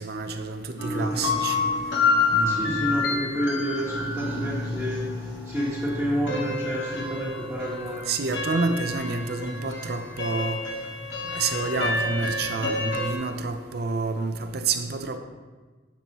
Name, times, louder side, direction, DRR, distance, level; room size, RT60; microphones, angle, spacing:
voice 1, 0.0-1.6 2.3-3.0 8.1-10.6 11.3-15.2, right 4 dB, 55° right, 7 dB, 0.6 m, -29 dB
sound 1, 0.8-13.1, left 3 dB, 70° left, 1.2 m, -28 dB
voice 2, 2.4-5.0 5.4-8.0, equal, ahead, -10 dB, 1.4 m, -29 dB
9.8 x 7.0 x 3.0 m, 1.3 s
head